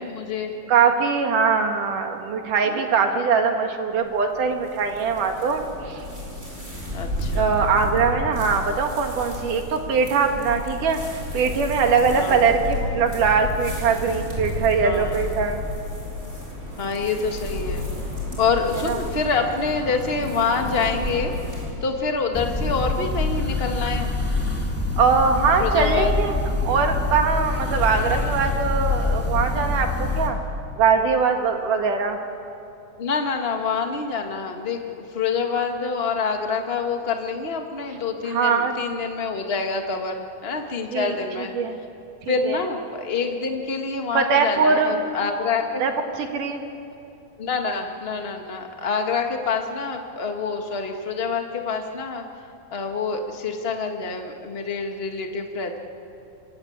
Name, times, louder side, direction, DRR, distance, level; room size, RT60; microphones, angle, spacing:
voice 1, 0.0-0.5 2.6-2.8 6.9-7.7 12.1-12.5 14.8-15.2 16.8-17.9 18.4-21.3 21.8-24.1 25.6-26.1 33.0-34.8 35.1-41.5 42.3-45.8 47.4-52.2 52.7-55.8, left 5 dB, 55° left, 3 dB, 0.6 m, -26 dB
voice 2, 0.7-6.0 7.3-15.6 18.9-19.0 25.0-26.4 26.6-30.4 30.8-32.2 38.2-38.7 40.9-41.1 41.5-41.8 42.4-42.6 44.1-44.9 45.8-45.9 46.2-46.6, right 5 dB, 60° right, 4 dB, 3.0 m, -22 dB
sound 1, 4.0-21.7, left 1 dB, 15° right, 7.2 m, -32 dB
sound 2, 22.3-30.3, left 3 dB, 5° left, 2.3 m, -25 dB
26.5 x 24.0 x 8.7 m, 2.6 s
omnidirectional pair, 4.4 m